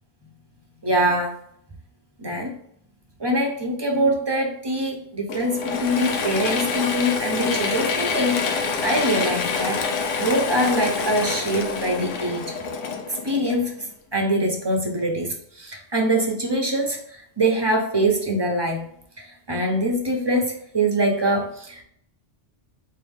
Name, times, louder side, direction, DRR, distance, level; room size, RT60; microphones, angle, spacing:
voice 1, 0.8-1.4 2.2-2.5 3.2-8.4 8.8-9.8 10.2-12.5 13.2-13.7 14.1-17.0 17.4-18.8 19.2-21.8, right 1 dB, 25° right, 1 dB, 0.7 m, -23 dB
Mechanisms / Drill, 5.3-13.9, left 5 dB, 80° left, 1.0 m, -27 dB
4.7 x 3.0 x 3.5 m, 0.66 s
omnidirectional pair, 1.2 m